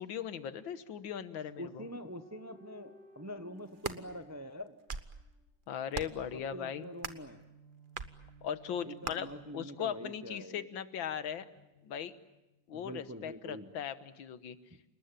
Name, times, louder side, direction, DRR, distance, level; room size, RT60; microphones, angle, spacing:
voice 1, 0.0-1.8 5.7-6.9 8.4-9.3 9.5-11.5 11.8-12.1 12.7-14.6, left 8 dB, 90° left, 12 dB, 1.9 m, -38 dB
voice 2, 1.6-4.8 6.3-7.4 8.8-10.7 12.7-13.7, equal, 15° right, 9 dB, 0.5 m, -45 dB
sound 1, 1.7-5.4 6.8-10.6 11.4-12.6, right 2 dB, 35° left, 4.9 m, -59 dB
sound 2, 3.6-4.0 4.7-5.2 5.9-6.3 7.0-7.3 7.9-8.1 9.0-9.2, right 5 dB, 35° right, 0.9 m, -39 dB
29.0 x 19.5 x 9.1 m, 0.96 s
omnidirectional pair, 2.1 m